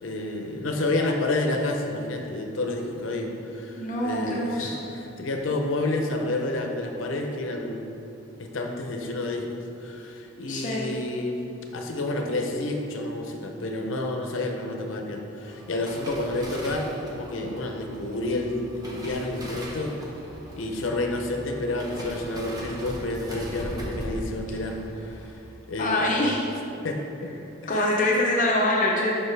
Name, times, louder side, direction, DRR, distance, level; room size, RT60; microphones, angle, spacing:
voice 1, 0.0-4.8 5.2-7.9 8.4-9.5 9.8-11.4 11.7-19.9 20.6-25.4 25.7-26.3 26.8-27.3 27.6-27.8, left 2 dB, 85° left, 2 dB, 0.7 m, -29 dB
voice 2, 3.8-4.8 10.5-10.9 25.8-26.4 27.7-29.2, left 1 dB, 45° left, -3 dB, 0.7 m, -24 dB
sound 1, 15.4-26.8 27.1-27.4 27.7-28.2 28.5-28.6, equal, 20° right, 1.0 m, -40 dB
6.8 x 5.6 x 3.3 m, 2.8 s
head